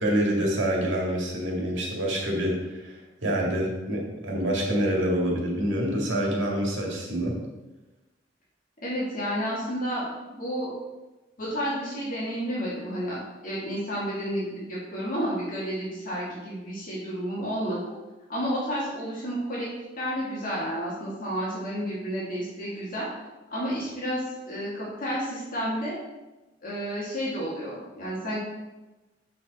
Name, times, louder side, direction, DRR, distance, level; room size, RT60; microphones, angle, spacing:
voice 1, 0.0-7.4, right 1 dB, 80° right, -2 dB, 1.9 m, -26 dB
voice 2, 8.8-10.7 11.4-13.2 13.4-17.8 18.3-19.7 20.0-23.1 23.5-26.0 26.6-28.4, equal, 50° left, -7 dB, 1.9 m, -31 dB
7.4 x 4.6 x 4.1 m, 1.1 s
head